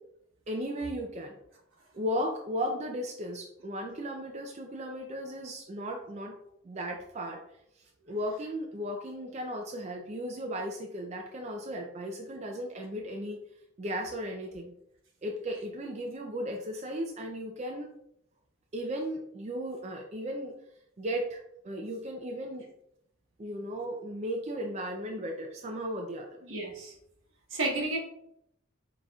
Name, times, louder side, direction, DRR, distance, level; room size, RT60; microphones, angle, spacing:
voice 1, 0.5-1.3 1.9-6.4 6.6-7.4 7.7-13.4 13.8-14.7 15.2-17.9 18.7-20.5 21.0-22.6 23.4-26.4, equal, 35° right, 2 dB, 0.4 m, -36 dB
voice 2, 26.4-26.9 27.5-28.0, right 2 dB, 80° right, -1 dB, 1.3 m, -31 dB
4.9 x 3.9 x 2.3 m, 0.75 s
head